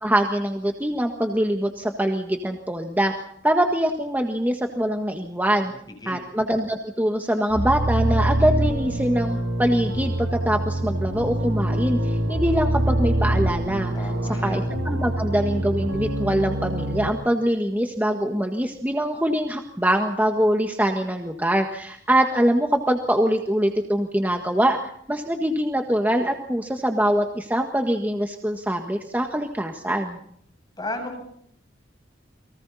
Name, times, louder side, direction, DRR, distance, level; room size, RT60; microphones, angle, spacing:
voice 1, 0.0-3.1 3.4-5.7 6.1-30.2, right 1 dB, 10° right, 3 dB, 1.6 m, -23 dB
sound 1, 7.5-17.1, right 1 dB, 90° right, 5.4 m, -25 dB
voice 2, 13.9-14.7 30.8-31.2, left 1 dB, 20° left, 2 dB, 7.8 m, -33 dB
30.0 x 23.5 x 4.2 m, 0.68 s
head